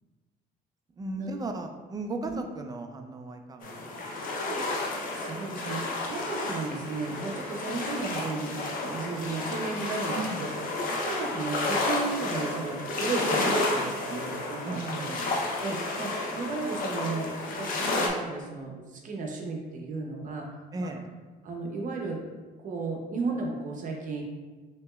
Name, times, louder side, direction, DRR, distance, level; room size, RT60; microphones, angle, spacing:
voice 1, 1.0-3.7 4.6-4.7 10.1-10.5 14.6-15.3 20.7-21.0, right 2 dB, 20° right, 5 dB, 0.4 m, -36 dB
sound 1, 3.6-18.1, left 2 dB, 55° left, 0.8 m, -31 dB
voice 2, 5.2-10.5 11.0-14.8 15.6-20.5 20.8-20.9 21.4-22.2 22.6-24.2, right 3 dB, 50° right, 0 dB, 0.8 m, -34 dB
6.0 x 2.9 x 2.4 m, 1.3 s
cardioid pair, 110°, 17 cm